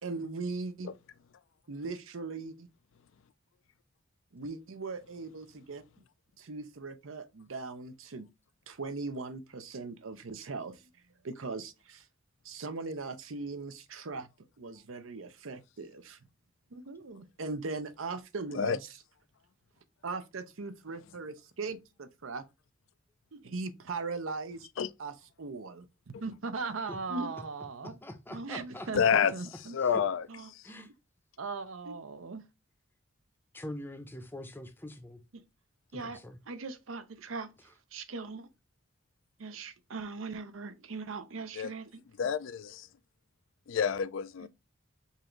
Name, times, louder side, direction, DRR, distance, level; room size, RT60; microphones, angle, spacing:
voice 1, 0.0-0.9 1.7-2.7 4.3-5.8 6.4-8.3 8.7-10.9 11.2-12.1 12.4-14.3 14.6-16.2 16.7-18.9 20.0-22.4 23.3-24.7 25.0-28.0 28.3-29.8 30.3-30.9 31.4-32.4 35.3-35.4 35.9-36.2 36.5-38.5 39.4-42.0 44.4-44.5, right 3 dB, 85° right, 0.7 m, -39 dB
voice 2, 27.8-29.3 29.8-30.0 30.6-30.9 33.5-35.2 35.9-36.4, left 1 dB, 10° left, 0.6 m, -44 dB
voice 3, 28.9-29.3 29.7-30.2 41.6-41.7 42.2-42.9 43.7-44.5, left 7 dB, 75° left, 0.4 m, -28 dB
5.4 x 2.6 x 3.0 m
head